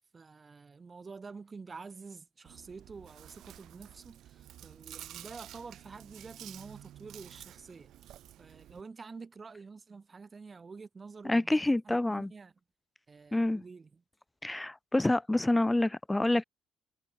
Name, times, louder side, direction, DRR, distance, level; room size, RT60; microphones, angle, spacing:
voice 1, 0.1-7.9 8.4-11.5 11.9-12.5 13.1-13.9, right 4 dB, 35° right, 1.2 m, -48 dB
Chewing mastication, 2.4-8.8, right 12 dB, 65° right, 0.9 m, -51 dB
voice 2, 11.2-12.3 13.3-13.6 14.4-16.4, left 2 dB, 15° left, 0.5 m, -27 dB
hypercardioid pair, 50°, 0 cm